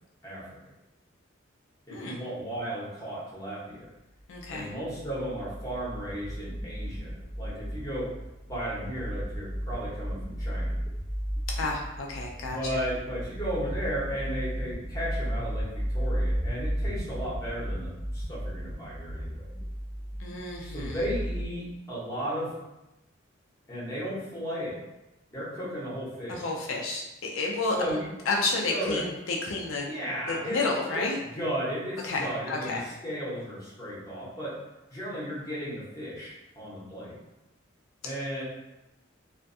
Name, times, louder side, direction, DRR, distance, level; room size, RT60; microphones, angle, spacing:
voice 1, 1.9-3.9 4.5-8.1 8.5-10.7 12.5-19.5 20.6-22.5 23.7-24.8 25.3-26.5 27.7-28.1 28.5-29.0 29.8-30.6 30.9-34.5 34.9-37.2 38.0-38.4, equal, 15° left, -8 dB, 0.8 m, -35 dB
voice 2, 4.3-4.7 11.6-12.8 20.2-21.0 26.3-27.8 28.3-29.9 30.3-31.2 32.0-32.8, left 3 dB, 75° left, -1 dB, 0.4 m, -31 dB
sound 1, 4.3-21.5, equal, ahead, 0.4 m, -34 dB
2.4 x 2.2 x 2.6 m, 0.95 s
head